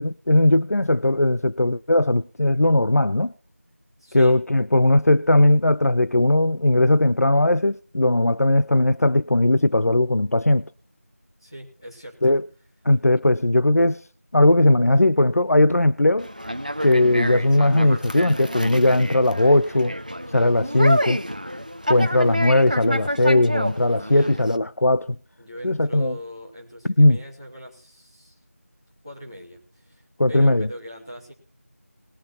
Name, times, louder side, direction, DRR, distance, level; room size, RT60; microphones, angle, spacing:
voice 1, 0.0-3.3 4.1-10.6 12.2-12.4 12.8-14.0 14.3-16.3 16.8-19.9 20.3-21.2 21.9-25.1 25.6-26.1 27.0-27.2 30.2-30.7, left 1 dB, 75° left, 0.6 m, -18 dB
voice 2, 4.0-4.4 11.4-12.4 24.1-24.4 25.4-28.4 29.0-31.3, equal, 15° left, 2.8 m, -41 dB
Conversation, 16.2-24.6, equal, 30° right, 0.8 m, -29 dB
20.5 x 8.8 x 4.3 m
figure-of-eight pair, 180°, 8 cm